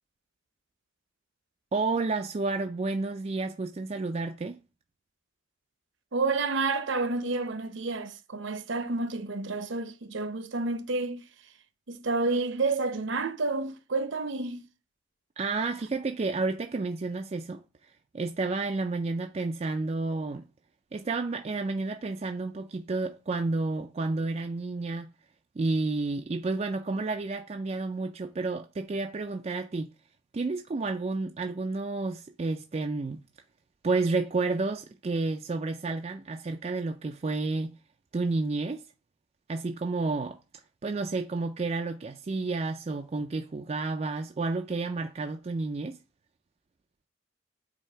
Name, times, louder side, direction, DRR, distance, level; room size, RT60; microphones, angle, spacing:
voice 1, 1.7-4.6 15.4-17.6 18.1-20.4 20.9-25.1 25.6-29.9 30.3-33.3 33.8-37.7 38.1-38.8 39.5-40.4 40.8-46.0, right 3 dB, 30° right, 0.3 m, -30 dB
voice 2, 6.1-11.2 11.9-14.6, right 3 dB, 65° right, 0.7 m, -30 dB
7.6 x 2.8 x 4.4 m
head